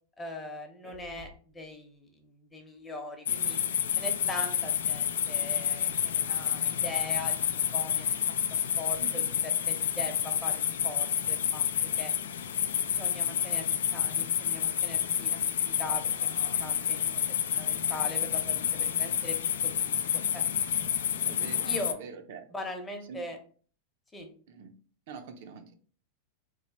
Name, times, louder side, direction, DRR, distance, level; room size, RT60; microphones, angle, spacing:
voice 1, 0.2-3.6 4.0-8.1 8.5-11.6 12.0-12.1 12.8-13.7 13.9-16.3 16.6-19.4 19.6-20.4 21.6-22.0 22.5-23.4 24.1-24.3, left 2 dB, 10° left, 3 dB, 0.7 m, -41 dB
sound 1, 3.3-21.9, left 9 dB, 85° left, 0.3 m, -29 dB
voice 2, 9.0-9.3 13.2-13.6 21.3-22.5 23.1-23.2 24.5-24.7 25.1-25.8, right 6 dB, 60° right, 6 dB, 0.5 m, -45 dB
3.1 x 2.1 x 4.0 m, 0.43 s
supercardioid pair, 135°, 0 cm